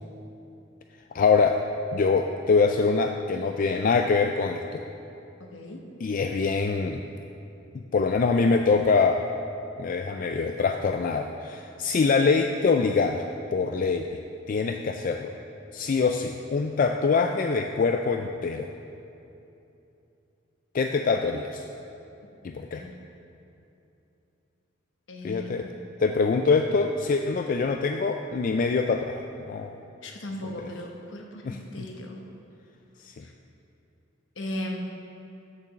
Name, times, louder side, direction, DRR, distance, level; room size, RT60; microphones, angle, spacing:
voice 1, 1.1-1.6 1.9-4.8 6.0-7.0 7.9-9.2 9.8-13.3 13.5-14.2 14.5-15.3 15.7-18.7 20.7-21.7 22.4-22.8 25.2-25.7 26.0-29.8 30.6-30.7 31.4-31.9 33.0-33.2, left 4 dB, 45° left, 5 dB, 0.3 m, -24 dB
voice 2, 5.4-5.8 22.7-22.9 25.1-25.7 30.0-32.2 33.2-33.3 34.4-34.8, left 1 dB, 75° left, 1 dB, 1.1 m, -37 dB
8.5 x 6.8 x 6.4 m, 2.8 s
head